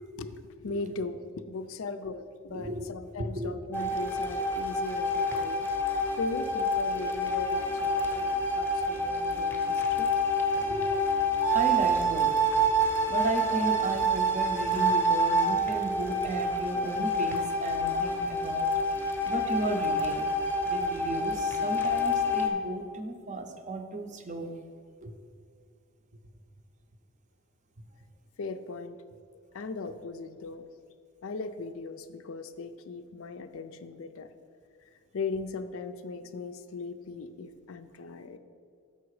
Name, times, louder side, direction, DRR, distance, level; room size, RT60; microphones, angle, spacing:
voice 1, 0.2-1.2 1.5-10.1 28.4-29.0 29.5-30.6 31.2-34.3 35.1-38.4, left 4 dB, 65° left, 10 dB, 0.4 m, -38 dB
voice 2, 2.5-2.8 3.2-3.6 10.7-10.9 11.5-12.3 13.1-18.7 19.3-20.3 20.7-24.5 25.0-25.1, right 2 dB, 35° right, 6 dB, 0.6 m, -34 dB
sound 1, 3.7-22.5, equal, 10° left, 0.7 m, -27 dB
6.9 x 5.7 x 4.8 m, 2.4 s
head